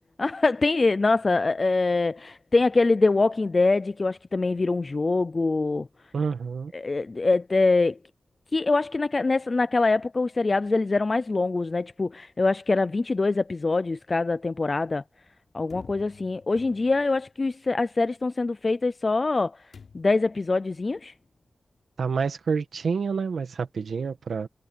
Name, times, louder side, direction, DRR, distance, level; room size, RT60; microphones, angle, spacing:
voice 1, 0.2-5.9 6.7-8.0 8.5-15.0 15.5-19.6 19.9-21.1, left 3 dB, 35° left, 0.5 m, -24 dB
voice 2, 6.1-6.7 22.0-24.5, right 5 dB, 80° right, 1.8 m, -28 dB
sound 1, 15.7-17.2 19.7-20.3, left 5 dB, 70° left, 7.2 m, -49 dB
wide cardioid pair, 150°, 0 cm